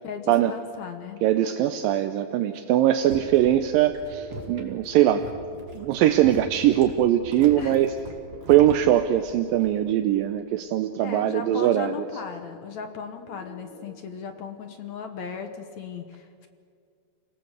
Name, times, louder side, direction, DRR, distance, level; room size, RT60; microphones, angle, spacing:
voice 1, 0.0-1.2 7.6-7.8 11.0-16.5, left 6 dB, 60° left, 6 dB, 2.1 m, -36 dB
voice 2, 1.2-5.3 5.7-7.9 8.5-11.9, right 12 dB, 80° right, 8 dB, 2.4 m, -21 dB
sound 1, 2.0-2.5 2.9-3.6 3.9-4.6 5.0-5.7 6.1-6.8 7.2-8.0 8.3-9.0 9.4-10.1 10.6-11.4 11.9-12.6 13.1-13.9, left 2 dB, 40° left, 4.9 m, -47 dB
sound 2, 2.8-10.0 10.3-10.7, right 1 dB, 40° right, 3.2 m, -41 dB
29.5 x 19.0 x 8.1 m, 2.3 s
omnidirectional pair, 4.4 m